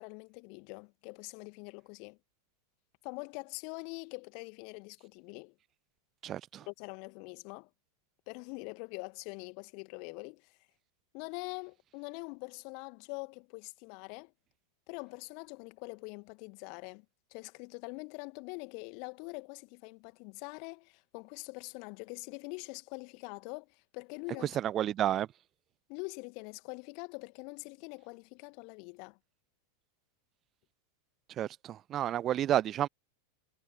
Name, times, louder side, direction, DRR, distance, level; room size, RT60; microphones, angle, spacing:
voice 1, 0.0-2.2 3.0-5.5 6.7-7.7 8.3-10.6 11.1-14.3 14.9-17.0 17.3-24.5 25.9-29.2, left 37 dB, 45° left, 2.1 m, -44 dB
voice 2, 6.2-6.7 24.5-25.3 31.4-32.9, right 11 dB, 30° right, 0.5 m, -30 dB
figure-of-eight pair, 90°, 0 cm